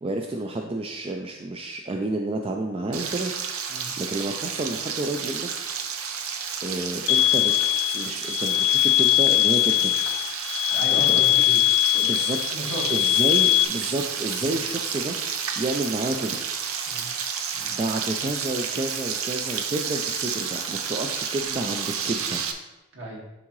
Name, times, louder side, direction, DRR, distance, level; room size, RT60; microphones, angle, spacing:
voice 1, 0.0-3.3 3.7-5.5 6.6-7.5 7.9-9.9 11.1-11.3 12.0-12.4 12.9-15.2 15.6-16.4 17.7-22.4, right 2 dB, 25° right, 2 dB, 0.3 m, -30 dB
Frying (food), 2.9-22.5, right 7 dB, 85° right, 0.7 m, -31 dB
sound 1, 7.1-13.6, left 15 dB, 85° left, 0.5 m, -21 dB
voice 2, 10.7-11.6 11.9-13.0 14.5-14.6 16.9-17.1 17.5-17.7 22.9-23.2, equal, 65° right, -3 dB, 1.8 m, -36 dB
11.0 x 3.6 x 3.1 m, 1.0 s
head